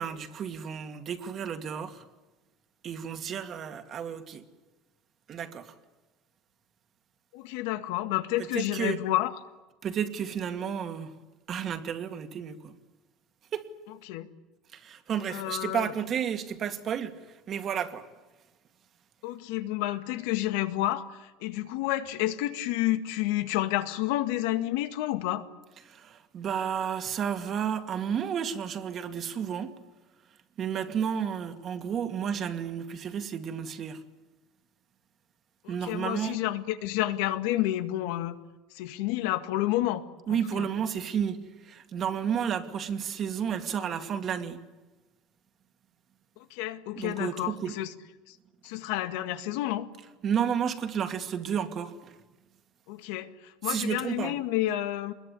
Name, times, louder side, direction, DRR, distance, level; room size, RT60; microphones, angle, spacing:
voice 1, 0.0-2.0 2.8-4.4 5.3-5.7 8.4-9.0 9.8-11.1 11.5-12.8 13.5-13.7 14.7-17.2 17.5-18.1 25.9-29.7 30.6-34.0 35.7-36.4 40.3-41.4 41.6-44.6 47.0-47.8 50.2-52.1 53.6-54.4, right 8 dB, 40° right, 2.3 m, -32 dB
voice 2, 7.3-9.3 14.1-14.3 15.3-15.9 19.2-21.1 21.4-25.4 35.6-38.3 38.8-40.0 40.3-40.7 46.5-47.9 48.6-49.9 52.9-53.3 53.6-55.1, left 15 dB, 80° left, 1.9 m, -30 dB
25.5 x 21.5 x 9.8 m
cardioid pair, 135°, 0 cm